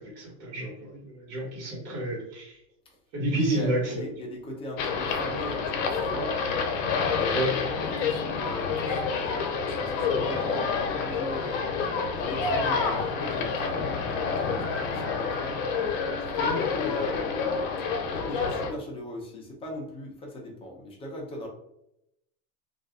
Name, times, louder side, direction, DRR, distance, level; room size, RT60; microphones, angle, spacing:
voice 1, 0.0-2.6 3.1-4.0 7.3-7.5, right 1 dB, 65° right, -2 dB, 1.5 m, -30 dB
voice 2, 3.3-6.4 7.1-11.7 12.1-15.5 16.3-17.4 18.1-21.5, equal, 15° left, -1 dB, 0.5 m, -38 dB
sound 1, 4.8-18.7, left 5 dB, 75° left, 0.8 m, -28 dB
2.5 x 2.4 x 3.5 m, 0.81 s
supercardioid pair, 155°, 39 cm